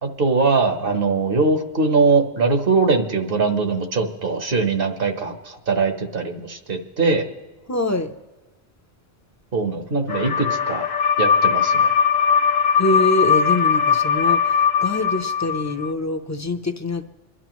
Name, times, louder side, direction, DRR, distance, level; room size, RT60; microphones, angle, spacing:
voice 1, 0.0-7.3 9.5-10.9 11.2-11.9, right 4 dB, 60° right, 1.3 m, -21 dB
voice 2, 7.7-8.1 12.8-17.0, left 2 dB, 20° left, 0.6 m, -24 dB
sound 1, 10.1-15.9, left 7 dB, 50° left, 0.7 m, -19 dB
27.5 x 11.0 x 3.1 m
omnidirectional pair, 1.1 m